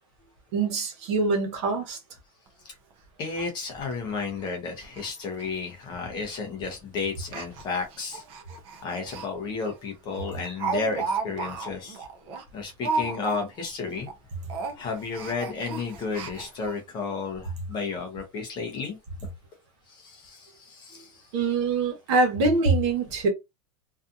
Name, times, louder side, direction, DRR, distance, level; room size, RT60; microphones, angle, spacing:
voice 1, 0.5-2.0 21.3-23.3, right 3 dB, 50° right, 1.1 m, -24 dB
Speech, 2.5-2.6 2.9-3.0 3.4-3.5 3.8-3.9 4.4-4.5 4.8-5.1 5.3-5.4 6.2-6.4 7.2-9.3 9.6-9.8 10.1-13.7 13.9-14.2 14.5-16.7 17.3-17.4 17.7-17.8, right 4 dB, 30° right, 0.5 m, -34 dB
voice 2, 3.2-8.2 8.8-12.1 12.5-14.1 14.8-19.0 19.9-21.2, left 4 dB, 25° left, 0.6 m, -32 dB
2.6 x 2.3 x 2.5 m
supercardioid pair, 160°, 19 cm